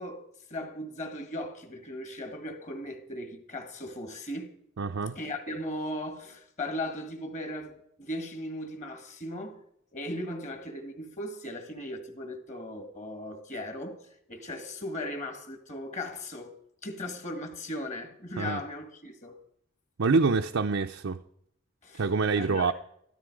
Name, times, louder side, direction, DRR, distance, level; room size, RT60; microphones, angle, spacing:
voice 1, 0.0-4.6 5.2-9.6 9.9-14.0 14.3-16.6 16.8-19.4 21.8-22.1 22.4-22.7, left 1 dB, 35° left, 2.0 m, -37 dB
voice 2, 4.8-5.2 18.4-18.6 20.0-21.2 22.0-22.7, right 4 dB, 70° right, 0.6 m, -26 dB
13.5 x 13.5 x 4.8 m
head